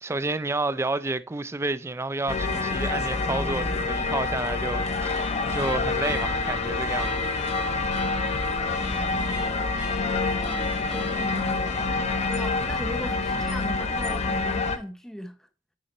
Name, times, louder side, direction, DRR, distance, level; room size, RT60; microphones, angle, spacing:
voice 1, 0.0-7.5, right 2 dB, 15° right, 0.3 m, -30 dB
sound 1, 2.3-14.8, left 3 dB, 35° left, 0.6 m, -27 dB
sound 2, 5.0-13.2, left 2 dB, 80° left, 2.3 m, -40 dB
voice 2, 8.8-9.7 10.4-12.0 12.3-15.4, equal, 5° left, 0.8 m, -39 dB
10.5 x 4.0 x 4.2 m
head